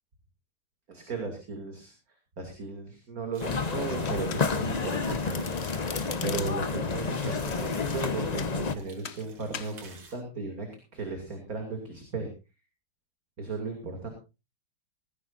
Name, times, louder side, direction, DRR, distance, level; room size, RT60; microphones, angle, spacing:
voice 1, 0.9-1.9 2.4-5.5 6.2-12.3 13.4-14.1, right 4 dB, 40° right, 4 dB, 3.1 m, -36 dB
sound 1, 3.3-10.2, right 4 dB, 90° right, 3.6 m, -51 dB
sound 2, 3.4-8.7, left 4 dB, 85° left, 0.3 m, -30 dB
Domestic sounds home sounds, 4.0-4.7 5.0-6.8 7.4-8.6 9.0-9.2 9.5-9.8, left 7 dB, 50° left, 0.8 m, -41 dB
19.0 x 15.0 x 2.6 m, 0.29 s
omnidirectional pair, 2.3 m